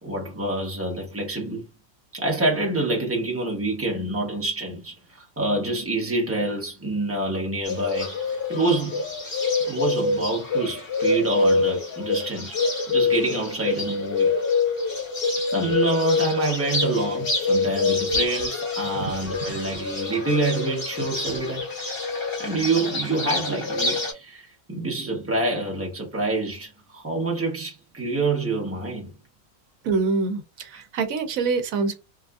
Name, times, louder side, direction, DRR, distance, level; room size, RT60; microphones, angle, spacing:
voice 1, 0.0-1.7 2.1-9.0 9.7-12.6 12.9-14.3 15.5-21.6 22.4-29.1 30.7-30.8, right 2 dB, 10° right, 0.9 m, -27 dB
Bird, 7.7-24.1, left 3 dB, 65° left, 2.0 m, -26 dB
voice 2, 29.8-32.0, right 4 dB, 80° right, 1.1 m, -25 dB
3.7 x 2.5 x 2.3 m
omnidirectional pair, 1.4 m